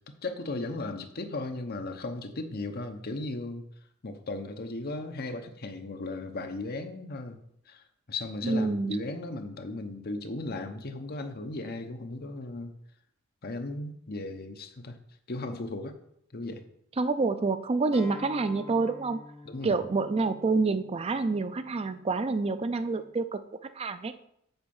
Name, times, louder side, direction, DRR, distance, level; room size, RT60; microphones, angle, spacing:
voice 1, 0.2-3.7 4.0-7.4 7.7-12.7 13.4-15.0 15.3-15.9 16.3-16.6 19.4-19.8, left 2 dB, 50° left, 6 dB, 0.9 m, -36 dB
voice 2, 8.4-9.0 17.0-19.2 19.6-23.4 23.8-24.1, right 3 dB, 30° right, 11 dB, 0.4 m, -27 dB
Acoustic guitar, 17.9-23.1, left 1 dB, 20° left, 1.4 m, -49 dB
8.0 x 4.5 x 7.1 m, 0.74 s
head